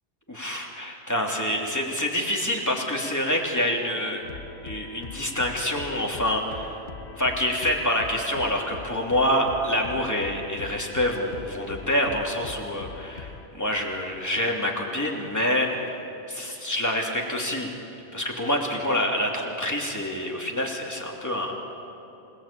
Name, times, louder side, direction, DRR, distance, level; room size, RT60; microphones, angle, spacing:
voice 1, 0.3-4.2 4.6-6.8 7.2-15.9 16.3-17.7 18.1-21.5, left 1 dB, 15° left, -1 dB, 3.2 m, -27 dB
sound 1, 4.2-13.5, left 5 dB, 70° left, 1.4 m, -42 dB
27.5 x 19.0 x 8.9 m, 3.0 s
omnidirectional pair, 1.2 m